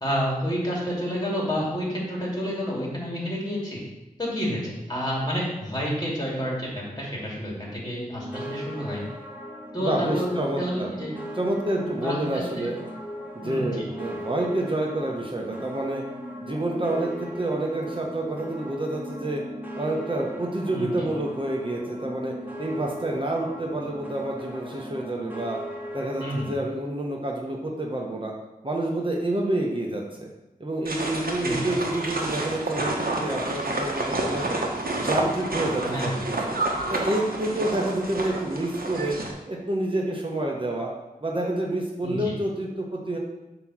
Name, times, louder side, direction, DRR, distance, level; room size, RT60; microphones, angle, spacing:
voice 1, 0.0-3.8 4.2-9.0 9.7-11.1 11.8-12.7 13.4-13.7 20.7-20.9 26.2-26.5 31.4-31.7 35.8-36.2 42.0-42.3, equal, 25° left, -4 dB, 2.5 m, -29 dB
sound 1, 8.1-26.5, equal, 10° right, 1.1 m, -38 dB
voice 2, 9.8-10.9 11.4-12.8 13.3-16.0 16.4-19.4 19.8-25.6 25.9-28.3 28.6-30.3 30.6-34.7 35.0-36.1 36.5-36.6 36.9-39.2 39.5-40.9 41.2-43.2, right 1 dB, 35° right, -1 dB, 1.0 m, -28 dB
sound 2, 30.8-39.3, right 2 dB, 80° right, 1.0 m, -29 dB
7.4 x 3.0 x 6.1 m, 0.99 s
wide cardioid pair, 70°, 15 cm